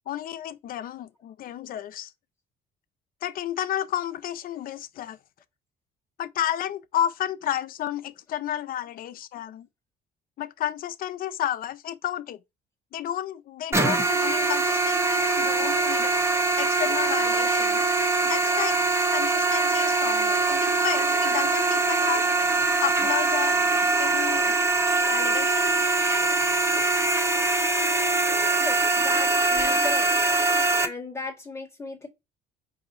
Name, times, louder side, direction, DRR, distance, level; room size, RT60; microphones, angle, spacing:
voice 1, 0.1-2.1 3.2-5.2 6.2-9.7 10.4-12.4 12.9-16.1 16.6-17.8 18.2-18.8 19.1-22.3 22.8-23.6 24.0-24.6 25.1-25.7, left 11 dB, 55° left, 0.6 m, -31 dB
sound 1, 13.7-30.9, right 3 dB, 15° right, 0.8 m, -23 dB
voice 2, 28.6-30.1 30.8-32.1, left 3 dB, 15° left, 1.6 m, -36 dB
4.7 x 2.7 x 3.9 m
cardioid pair, 110°, 17 cm